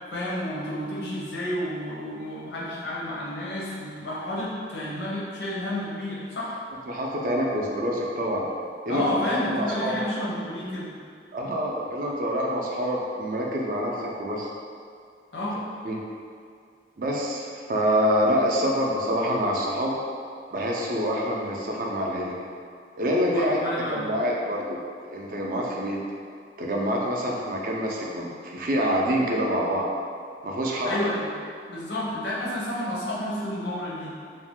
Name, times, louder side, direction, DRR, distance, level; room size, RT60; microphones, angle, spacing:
voice 1, 0.1-6.6 8.9-10.9 15.3-15.6 23.3-24.1 30.8-31.2 31.7-34.1, left 1 dB, 80° left, -7 dB, 0.7 m, -30 dB
voice 2, 6.9-8.5 8.9-10.0 11.3-14.5 15.8-16.0 17.0-20.0 20.5-22.4 23.0-23.6 23.9-26.0 26.6-29.9 30.4-31.0, equal, 50° right, -2 dB, 0.4 m, -26 dB
2.5 x 2.1 x 3.6 m, 2.3 s
head